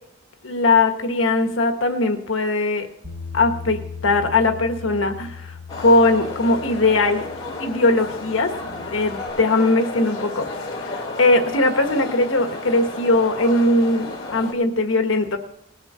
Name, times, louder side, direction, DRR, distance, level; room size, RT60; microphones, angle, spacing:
voice 1, 0.4-2.9 3.3-5.5 5.8-7.2 7.6-8.5 8.8-10.5 10.8-10.9 11.2-15.4, left 2 dB, 75° left, 6 dB, 1.4 m, -20 dB
Bass guitar, 3.0-9.3, left 5 dB, 65° right, 5.2 m, -38 dB
sound 1, 5.7-14.5, left 2 dB, 20° left, 3.4 m, -32 dB
19.0 x 6.6 x 5.6 m, 0.78 s
head